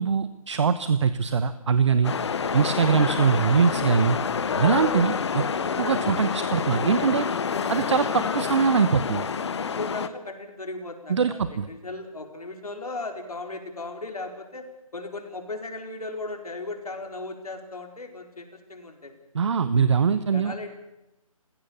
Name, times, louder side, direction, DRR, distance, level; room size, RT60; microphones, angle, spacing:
voice 1, 0.0-2.1 2.5-4.2 4.6-5.4 5.8-7.3 7.7-9.3 11.1-11.7 19.3-20.5, right 6 dB, 50° right, 13 dB, 1.1 m, -22 dB
sound 1, 2.0-10.1, left 6 dB, 50° left, 1.3 m, -27 dB
voice 2, 9.6-19.1 20.3-20.8, left 2 dB, 85° left, 4 dB, 4.5 m, -37 dB
28.0 x 16.5 x 7.1 m, 0.94 s
hypercardioid pair, 160°, 19 cm